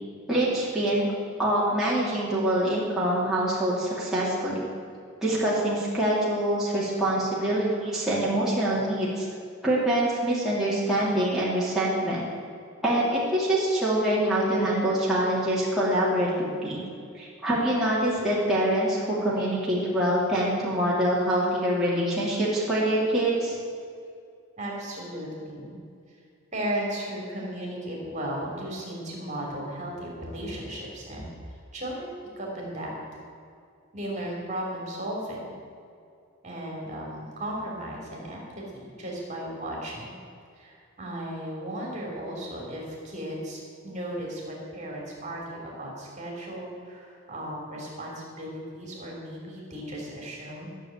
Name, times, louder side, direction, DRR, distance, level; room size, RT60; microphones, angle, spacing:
voice 1, 0.3-1.1 1.4-4.7 5.2-9.3 9.6-12.3 12.8-16.8 17.2-23.5, right 1 dB, ahead, -9 dB, 2.7 m, -25 dB
voice 2, 24.6-25.7 26.5-31.3 31.7-33.0 33.9-35.5 36.4-40.2 40.6-50.7, right 1 dB, 35° right, -2 dB, 3.1 m, -35 dB
14.0 x 7.0 x 9.1 m, 2.4 s
head